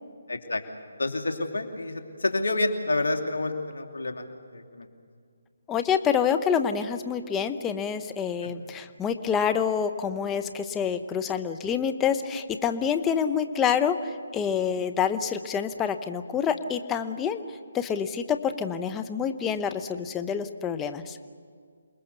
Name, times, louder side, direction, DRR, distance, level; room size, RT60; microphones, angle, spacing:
voice 1, 0.3-0.6 1.0-4.2 4.5-4.9, left 2 dB, 75° left, 4 dB, 2.9 m, -28 dB
voice 2, 5.7-17.4 17.7-21.2, left 7 dB, 10° left, 7 dB, 0.9 m, -27 dB
28.0 x 20.5 x 6.9 m, 2.1 s
figure-of-eight pair, 155°, 0 cm